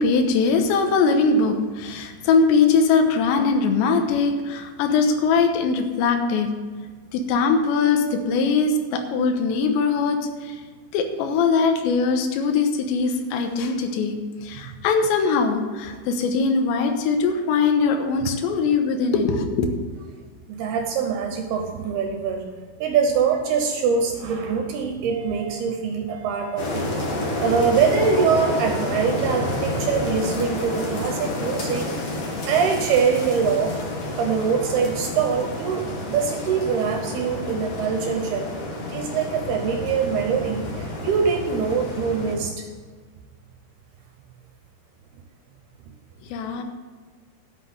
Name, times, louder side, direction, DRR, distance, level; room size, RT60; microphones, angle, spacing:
voice 1, 0.0-6.5 7.1-10.6 10.9-19.7 46.2-46.6, left 4 dB, 75° left, 5 dB, 3.1 m, -21 dB
voice 2, 20.5-22.5 22.8-26.9 27.4-31.9 32.5-33.8 34.2-42.7, right 6 dB, 75° right, 4 dB, 2.4 m, -23 dB
sound 1, 25.1-25.6 26.1-26.6 27.1-27.6 28.1-28.6 29.1-29.6, right 12 dB, 25° right, 1.8 m, -40 dB
sound 2, 26.6-42.4, left 2 dB, 55° left, 1.8 m, -29 dB
12.0 x 5.8 x 7.9 m, 1.5 s
omnidirectional pair, 5.5 m